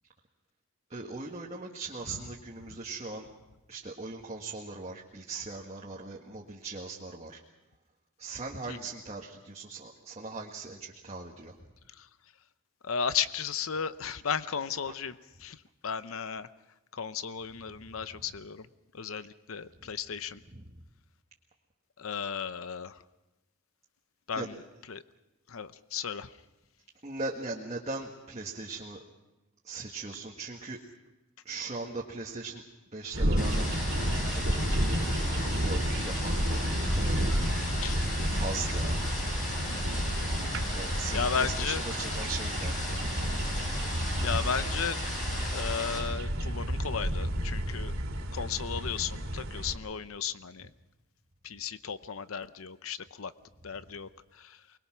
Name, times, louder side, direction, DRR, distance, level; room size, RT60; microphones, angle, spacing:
voice 1, 0.9-3.3 3.7-7.4 8.2-11.5 20.5-20.8 24.4-24.5 27.0-29.0 29.6-30.8 31.4-32.6 32.9-33.6 33.9-34.9 35.3-37.3 38.3-39.1 40.7-43.1, right 3 dB, 30° right, -2 dB, 1.6 m, -40 dB
voice 2, 12.8-15.6 15.8-16.5 16.9-18.7 18.9-20.4 22.0-23.0 24.3-24.5 24.9-25.0 25.5-26.3 37.6-38.1 39.7-40.0 41.1-41.8 44.2-45.0 45.4-47.9 48.3-50.7 51.4-53.3 53.6-54.1 54.4-54.6, left 6 dB, 80° left, 13 dB, 0.8 m, -34 dB
sound 1, 33.1-49.7, equal, 80° right, 3.1 m, -31 dB
sound 2, 33.4-46.0, left 1 dB, 40° left, 7.7 m, -37 dB
24.0 x 21.0 x 6.1 m, 1.0 s
head